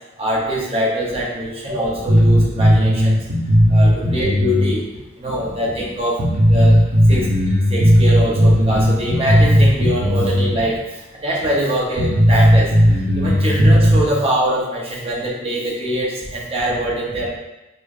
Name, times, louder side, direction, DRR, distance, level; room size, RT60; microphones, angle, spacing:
voice 1, 0.2-3.2 3.7-4.8 5.2-6.2 6.5-6.8 7.1-7.3 7.7-10.8 11.1-12.7 13.2-17.3, equal, 30° right, -3 dB, 0.6 m, -23 dB
sound 1, 2.1-4.7 4.9-5.0 5.6-5.7 6.2-10.4 10.7-10.8 11.4-11.5 12.0-14.0, equal, 60° right, 0.8 m, -14 dB
4.9 x 2.1 x 2.4 m, 1.0 s
head